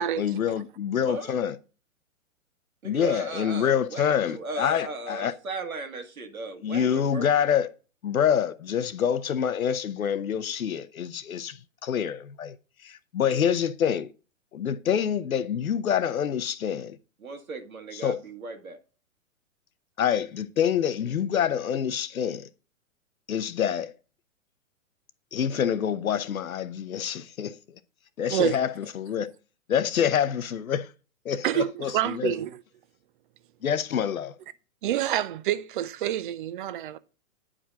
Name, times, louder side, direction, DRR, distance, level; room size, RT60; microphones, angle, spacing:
voice 1, 0.0-1.5 2.8-5.3 6.6-7.7 8.0-12.6 12.8-14.1 14.5-17.0 17.9-18.2 20.0-22.5 23.3-23.9 25.3-27.6 28.2-29.3 29.7-30.9 31.2-32.3 33.6-34.3, left 8 dB, 80° left, 0.9 m, -26 dB
voice 2, 1.0-1.4 2.8-7.3 17.2-18.8, right 3 dB, 85° right, 1.8 m, -37 dB
voice 3, 31.4-32.5 34.8-37.0, right 11 dB, 40° right, 0.6 m, -27 dB
9.8 x 5.0 x 3.7 m
hypercardioid pair, 130°, 41 cm